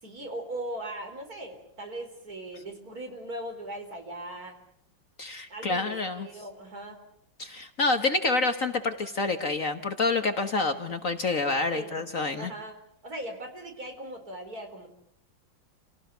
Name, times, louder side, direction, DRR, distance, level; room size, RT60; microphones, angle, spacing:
voice 1, 0.0-4.6 5.5-7.0 11.7-12.0 12.4-12.8 13.0-14.9, right 1 dB, 50° right, 4 dB, 5.1 m, -39 dB
voice 2, 5.2-6.3 7.4-12.5, left 3 dB, 45° left, 8 dB, 1.6 m, -28 dB
29.5 x 18.5 x 9.2 m, 0.68 s
omnidirectional pair, 2.1 m